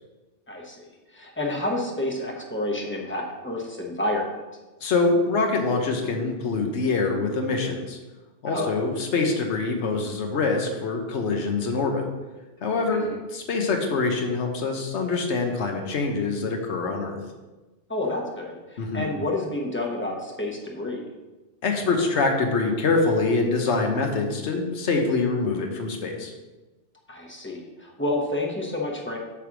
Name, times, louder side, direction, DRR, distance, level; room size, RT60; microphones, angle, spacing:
voice 1, 0.5-0.9 1.1-4.3 8.5-8.7 12.9-13.2 17.9-21.0 27.1-29.2, left 1 dB, 10° left, -1 dB, 1.1 m, -29 dB
voice 2, 4.8-8.0 8.4-12.0 12.6-17.2 18.8-19.1 21.6-26.3, left 3 dB, 75° left, 3 dB, 1.3 m, -25 dB
8.4 x 3.4 x 6.1 m, 1.2 s
omnidirectional pair, 1.2 m